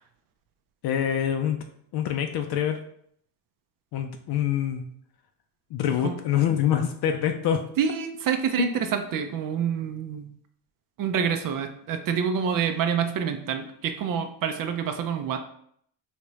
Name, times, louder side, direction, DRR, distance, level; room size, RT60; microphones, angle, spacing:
voice 1, 0.8-1.6 1.9-2.8 3.9-4.9 5.7-7.6 8.6-8.8, left 9 dB, 65° left, 5 dB, 0.5 m, -25 dB
voice 2, 7.8-10.3 11.0-15.4, right 7 dB, 55° right, 7 dB, 0.5 m, -27 dB
3.4 x 2.8 x 3.1 m, 0.67 s
cardioid pair, 100°, 41 cm